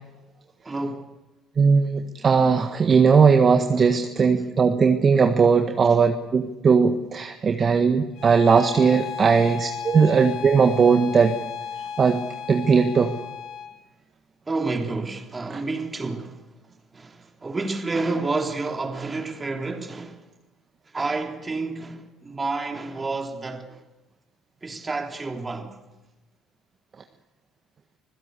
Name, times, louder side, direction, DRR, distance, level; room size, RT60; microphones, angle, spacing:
voice 1, 0.7-1.1 9.5-9.6 14.5-16.4 16.9-20.3 20.9-23.8 24.6-25.8, right 3 dB, 25° right, 3.5 m, -29 dB
voice 2, 1.6-11.3 12.0-13.1, right 5 dB, 40° right, 1.6 m, -19 dB
Bowed string instrument, 8.2-13.8, left 7 dB, 65° left, 2.5 m, -35 dB
26.0 x 16.0 x 8.3 m
hypercardioid pair, 65°, 0 cm